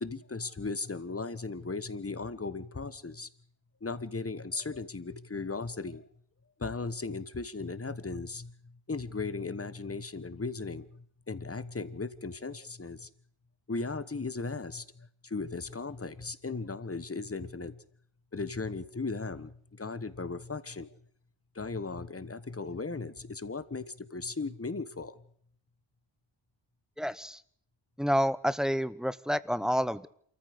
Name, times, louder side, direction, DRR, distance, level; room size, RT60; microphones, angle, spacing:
voice 1, 0.0-3.3 3.8-6.0 6.6-8.5 8.9-13.1 13.7-17.8 18.3-20.9 21.5-25.2, left 3 dB, 30° left, 15 dB, 1.3 m, -37 dB
voice 2, 27.0-27.4 28.0-30.1, equal, ahead, 16 dB, 0.8 m, -29 dB
27.5 x 14.5 x 6.6 m, 0.65 s
wide cardioid pair, 70°, 48 cm